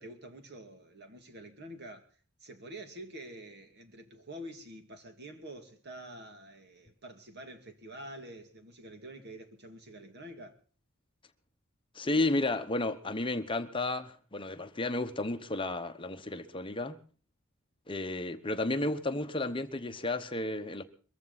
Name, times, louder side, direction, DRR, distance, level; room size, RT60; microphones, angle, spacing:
voice 1, 0.0-2.1 2.4-10.6, right 1 dB, 50° right, 2.5 m, -47 dB
voice 2, 11.9-17.0 17.9-20.8, left 2 dB, 25° left, 1.0 m, -32 dB
23.0 x 15.0 x 4.1 m
head